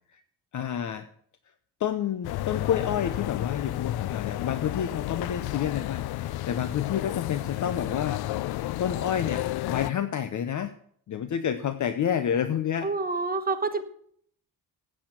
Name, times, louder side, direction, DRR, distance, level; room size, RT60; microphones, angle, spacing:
voice 1, 0.5-1.1 1.8-8.3 8.8-10.7 11.1-12.9, left 9 dB, 50° left, 11 dB, 0.8 m, -29 dB
sound 1, 2.2-9.9, left 15 dB, 75° left, 0.5 m, -32 dB
voice 2, 12.8-13.8, right 3 dB, 25° right, 8 dB, 1.2 m, -27 dB
14.0 x 8.7 x 5.9 m, 0.62 s
wide cardioid pair, 170°, 39 cm